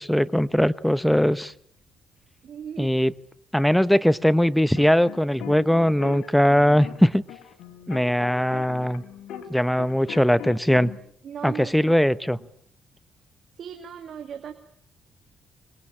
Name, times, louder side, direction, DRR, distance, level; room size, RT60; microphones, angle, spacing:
voice 1, 0.0-1.5 2.8-3.1 3.5-7.2 7.9-9.0 9.5-10.9 11.4-12.4, equal, 5° left, 16 dB, 1.0 m, -20 dB
voice 2, 2.4-2.9 11.2-11.9 13.6-14.5, right 8 dB, 60° right, 7 dB, 2.3 m, -37 dB
sound 1, 4.8-9.5 9.8-11.0, left 10 dB, 85° left, 3.8 m, -39 dB
25.5 x 22.0 x 8.8 m, 0.65 s
cardioid pair, 90°, 0 cm